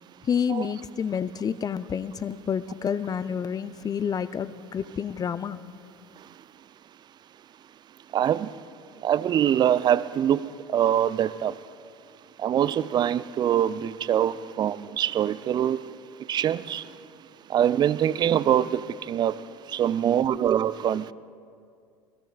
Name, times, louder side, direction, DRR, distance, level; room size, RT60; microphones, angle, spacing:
voice 1, 0.2-5.6, left 7 dB, 25° left, 0.5 m, -29 dB
voice 2, 8.1-8.5 9.0-11.6 12.4-15.8 16.3-16.9 17.5-19.4 19.7-21.1, right 10 dB, 25° right, 0.4 m, -24 dB
26.5 x 21.0 x 2.4 m
figure-of-eight pair, 70°, 16 cm